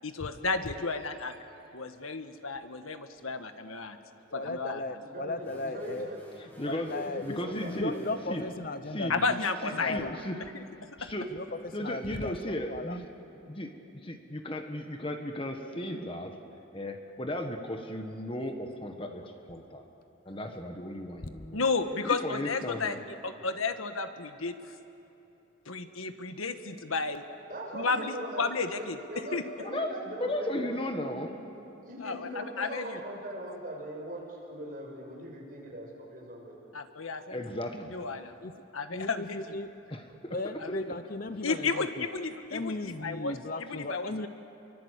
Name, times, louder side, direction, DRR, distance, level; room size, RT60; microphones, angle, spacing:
voice 1, 0.0-1.3 1.7-4.0 4.3-4.8 9.1-10.2 11.0-11.1 21.5-24.7 25.6-27.2 27.7-29.0 29.3-29.4 32.0-33.0 36.7-37.4 37.9-38.3 38.7-39.6 40.6-40.8 41.4-44.3, left 4 dB, 90° left, 8 dB, 1.5 m, -33 dB
voice 2, 4.3-6.1 6.6-9.4 9.7-10.2 11.3-13.0 38.4-38.5 38.9-39.7 40.3-42.0 42.5-44.3, left 2 dB, 45° left, 10 dB, 0.8 m, -36 dB
voice 3, 5.0-6.2 6.7-8.2 27.5-31.3 31.8-36.6, right 1 dB, 40° right, -2 dB, 6.2 m, -41 dB
sound 1, 5.4-8.3, right 1 dB, 10° left, 4.6 m, -54 dB
voice 4, 6.6-6.9 7.2-8.0 8.3-8.5 8.9-9.1 9.6-10.4 11.0-11.3 11.7-13.1 13.5-13.8 14.0-16.4 16.7-19.8 20.2-21.6 22.0-23.0 29.6-31.3 37.3-38.0 39.9-40.3, left 1 dB, 25° left, 4 dB, 1.5 m, -35 dB
29.5 x 23.5 x 8.4 m, 2.9 s
head